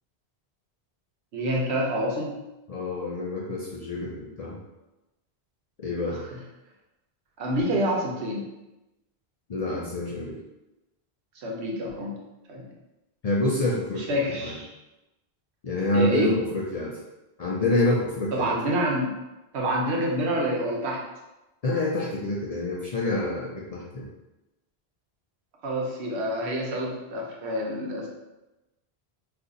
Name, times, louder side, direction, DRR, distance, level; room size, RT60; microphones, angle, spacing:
voice 1, 1.3-2.4 6.1-6.2 7.4-8.4 11.4-12.1 12.5-12.7 14.1-14.7 15.9-16.3 18.3-19.1 19.5-21.0 25.6-28.1, right 1 dB, 85° right, -2 dB, 1.0 m, -27 dB
voice 2, 2.7-4.6 5.8-6.2 9.5-10.4 13.2-14.6 15.6-17.0 17.4-18.6 21.6-24.1, left 2 dB, 55° left, -4 dB, 0.4 m, -27 dB
2.7 x 2.4 x 3.8 m, 1.0 s
omnidirectional pair, 1.1 m